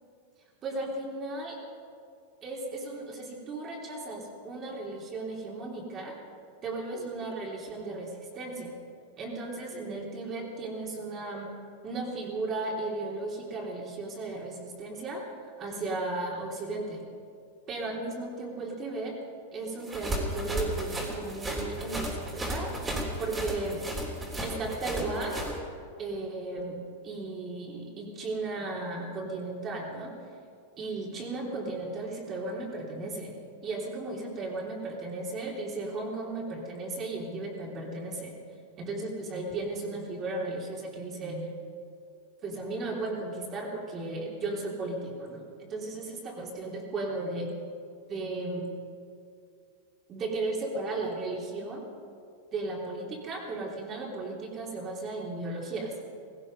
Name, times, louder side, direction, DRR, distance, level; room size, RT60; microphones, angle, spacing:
voice 1, 0.6-1.6 2.4-6.2 6.6-8.7 9.2-15.3 15.6-17.0 17.7-19.2 19.5-22.7 23.2-23.8 24.4-25.4 26.0-26.8 27.0-30.1 30.8-33.3 33.6-38.3 38.8-41.5 42.4-47.5 48.1-48.7 50.1-51.9 52.5-55.9, right 2 dB, 30° right, -1 dB, 3.2 m, -35 dB
sound 1, 19.8-25.5, right 1 dB, 15° right, 3.3 m, -34 dB
16.5 x 16.5 x 5.4 m, 2.3 s
hypercardioid pair, 130°, 0 cm